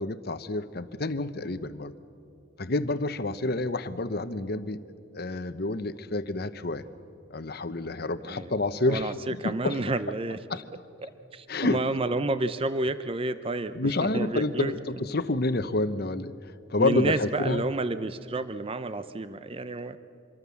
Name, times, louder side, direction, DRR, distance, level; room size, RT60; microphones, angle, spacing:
voice 1, 0.0-1.9 2.6-4.8 5.1-6.8 7.3-9.1 9.4-9.8 10.5-10.6 11.5-11.8 13.7-16.3 16.7-17.6, left 2 dB, 55° left, 12 dB, 0.9 m, -28 dB
voice 2, 8.9-10.4 11.0-14.7 16.8-20.0, right 2 dB, 30° right, 12 dB, 0.6 m, -30 dB
26.0 x 23.0 x 7.1 m, 2.6 s
head